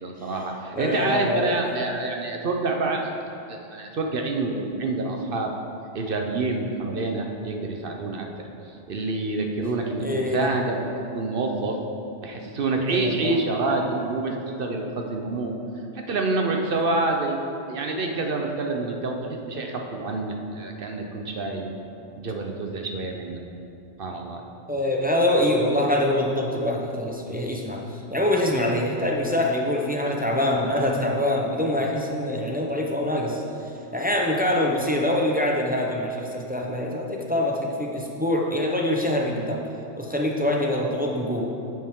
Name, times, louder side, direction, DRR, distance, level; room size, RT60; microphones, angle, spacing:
voice 1, 0.0-3.1 3.5-5.5 5.9-8.3 8.6-11.8 12.2-15.6 15.9-17.4 17.7-21.7 22.2-23.4 24.0-24.4, right 3 dB, 55° right, 2 dB, 0.9 m, -27 dB
voice 2, 0.7-1.6 10.0-10.5 12.9-13.4 24.7-33.4 33.9-39.6 40.0-41.5, left 1 dB, 10° right, -1 dB, 0.6 m, -24 dB
10.0 x 7.6 x 3.7 m, 2.7 s
omnidirectional pair, 1.2 m